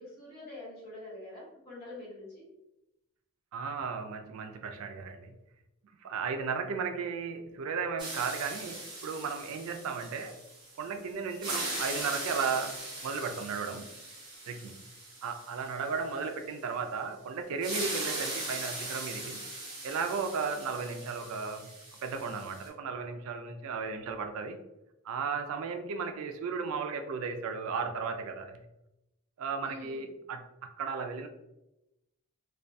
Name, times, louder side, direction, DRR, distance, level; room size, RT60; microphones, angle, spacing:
voice 1, 0.0-2.5 29.6-30.1, left 2 dB, 45° left, -7 dB, 1.2 m, -45 dB
voice 2, 3.5-5.3 6.0-10.4 10.8-13.9 14.5-14.7 15.2-19.4 19.8-21.7 22.0-24.6 25.0-28.6 29.4-30.4 30.8-31.3, right 5 dB, 70° right, 6 dB, 0.3 m, -35 dB
sound 1, 8.0-10.9 11.3-16.1 17.6-22.7, right 2 dB, 20° right, 0.6 m, -40 dB
2.3 x 2.1 x 2.5 m, 0.91 s
head